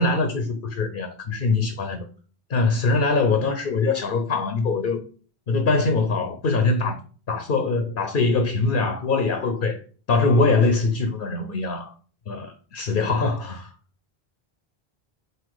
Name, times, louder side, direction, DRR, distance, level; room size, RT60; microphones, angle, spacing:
voice 1, 0.0-2.1 2.5-5.0 5.5-7.0 7.3-9.8 10.1-11.9 12.3-13.7, left 3 dB, 60° left, 1.0 m, -23 dB
7.8 x 2.8 x 4.8 m
omnidirectional pair, 1.0 m